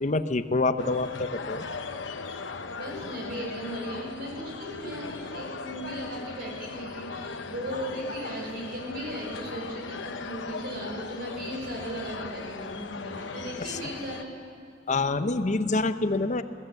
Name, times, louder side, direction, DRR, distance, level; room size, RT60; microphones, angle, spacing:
voice 1, 0.0-1.6 13.7-13.8 14.9-16.4, left 3 dB, 40° left, 11 dB, 0.7 m, -26 dB
sound 1, 0.8-14.2, left 4 dB, 80° left, 0.9 m, -38 dB
voice 2, 2.7-14.3, right 1 dB, 60° right, -1 dB, 5.6 m, -37 dB
21.5 x 15.5 x 7.8 m, 2.3 s
head